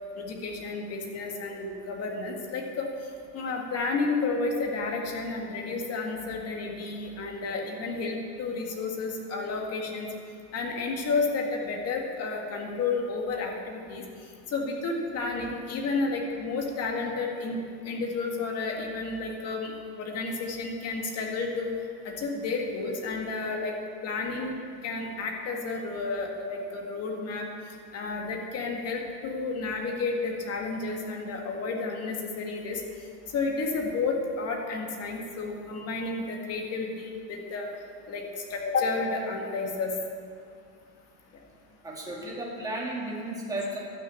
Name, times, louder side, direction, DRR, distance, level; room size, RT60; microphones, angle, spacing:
voice 1, 0.2-2.9 3.3-10.1 10.5-14.0 14.5-21.7 22.0-23.7 24.0-24.5 24.8-27.5 27.9-32.8 33.3-37.7 38.1-38.2 38.5-39.9, left 3 dB, 30° left, 1 dB, 1.9 m, -31 dB
voice 2, 41.8-43.8, right 1 dB, 5° right, -4 dB, 2.2 m, -34 dB
12.0 x 6.5 x 8.5 m, 2.3 s
supercardioid pair, 140°, 47 cm